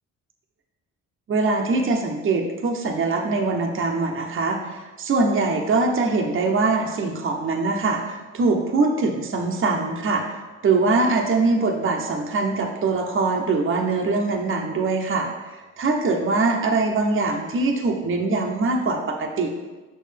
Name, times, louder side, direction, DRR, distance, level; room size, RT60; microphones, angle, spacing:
voice 1, 1.3-10.2 10.6-15.3 15.8-19.5, right 3 dB, 45° right, 2 dB, 0.8 m, -22 dB
6.6 x 6.1 x 3.3 m, 1.2 s
cardioid pair, 90°, 30 cm